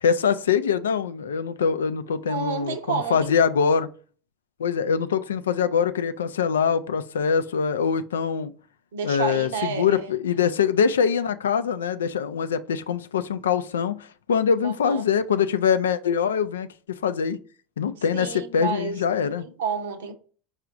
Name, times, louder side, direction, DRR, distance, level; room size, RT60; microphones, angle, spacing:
voice 1, 0.0-3.9 4.6-8.5 9.0-17.4 17.8-19.5, left 7 dB, 80° left, 0.3 m, -23 dB
voice 2, 2.3-3.3 8.9-10.1 14.6-15.0 18.1-18.9 19.4-20.1, right 6 dB, 75° right, 0.7 m, -30 dB
4.8 x 2.4 x 3.9 m
hypercardioid pair, 80°, 0 cm